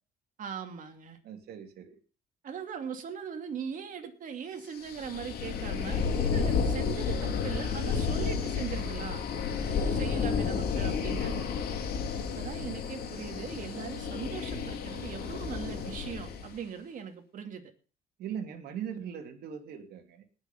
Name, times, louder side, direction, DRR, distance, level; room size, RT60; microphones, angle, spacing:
voice 1, 0.4-1.2 2.4-11.5 12.3-17.7, right 7 dB, 50° right, 5 dB, 2.6 m, -40 dB
voice 2, 1.2-2.0 18.2-20.2, right 8 dB, 70° right, 4 dB, 2.8 m, -40 dB
sound 1, 4.8-16.6, left 6 dB, 65° left, 3.2 m, -31 dB
19.5 x 6.8 x 5.3 m, 0.36 s
cardioid pair, 110°, 17 cm